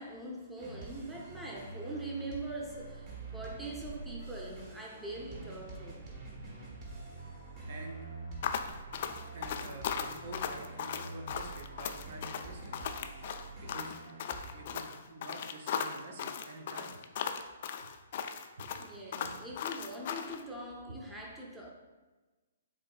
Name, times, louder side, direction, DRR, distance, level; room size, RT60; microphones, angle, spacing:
voice 1, 0.0-6.0 8.5-8.8 18.8-21.7, right 1 dB, 5° right, -2 dB, 0.6 m, -43 dB
sound 1, 0.6-14.8, right 3 dB, 30° right, 1.1 m, -46 dB
voice 2, 7.7-8.1 9.3-12.9 13.6-14.0 14.5-17.0 17.8-17.9 18.6-18.7, right 2 dB, 55° right, 3 dB, 0.6 m, -48 dB
sound 2, 8.4-20.4, left 7 dB, 50° left, 0.3 m, -37 dB
7.4 x 2.7 x 2.3 m, 1.2 s
hypercardioid pair, 140°, 0 cm